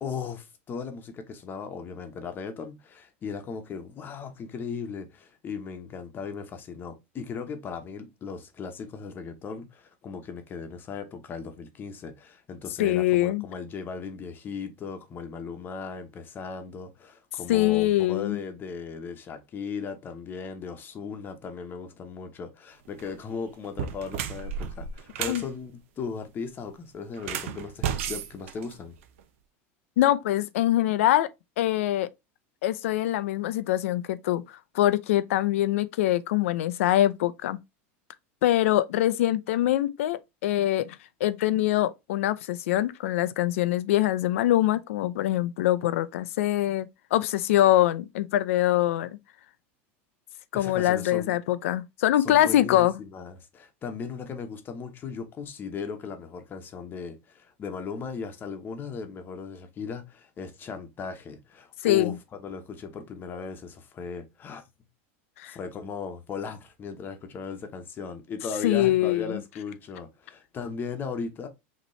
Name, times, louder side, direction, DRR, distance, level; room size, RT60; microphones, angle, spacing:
voice 1, 0.0-29.0 50.5-51.4 52.2-64.6 65.5-71.5, left 5 dB, 30° left, 0.9 m, -37 dB
voice 2, 12.8-13.4 17.5-18.4 25.3-25.4 30.0-31.3 31.6-32.1 32.6-37.6 38.4-49.2 50.5-53.0 61.8-62.1 65.4-65.6 68.6-69.4, left 14 dB, 85° left, 0.5 m, -24 dB
sound 1, 22.9-23.1 23.6-25.5 27.1-29.2, right 8 dB, 75° right, 0.7 m, -33 dB
5.3 x 3.0 x 3.1 m
supercardioid pair, 130°, 7 cm